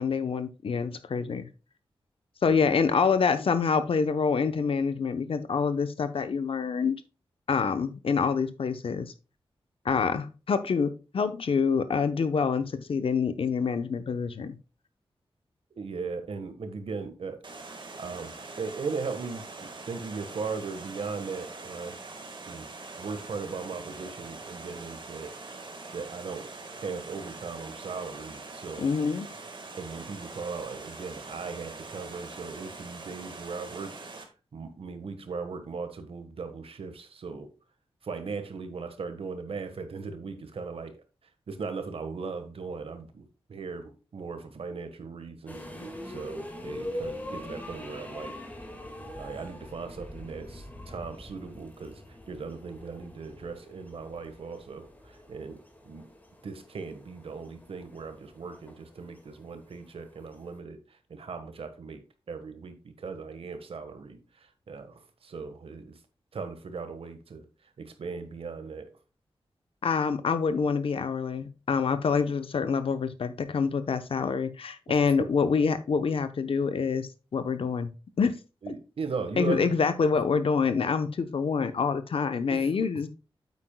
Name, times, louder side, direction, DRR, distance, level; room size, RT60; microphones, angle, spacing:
voice 1, 0.0-1.5 2.4-7.0 7.5-9.1 9.8-14.6 28.8-29.3 69.8-77.9 78.2-78.4 79.4-83.1, left 5 dB, 70° left, 0.8 m, -26 dB
voice 2, 15.7-17.4 17.7-22.0 22.5-22.7 23.0-25.3 25.9-28.9 29.8-37.5 38.0-41.0 41.5-48.4 49.2-56.1 56.4-66.0 66.3-67.4 67.8-68.9 75.2-75.3 78.6-79.8 82.5-82.7, right 4 dB, 75° right, 1.4 m, -38 dB
Water, 17.4-34.2, right 3 dB, 55° right, 1.7 m, -43 dB
sound 1, 45.5-60.6, left 1 dB, 15° left, 1.9 m, -43 dB
8.9 x 8.2 x 2.3 m
wide cardioid pair, 105°, 10 cm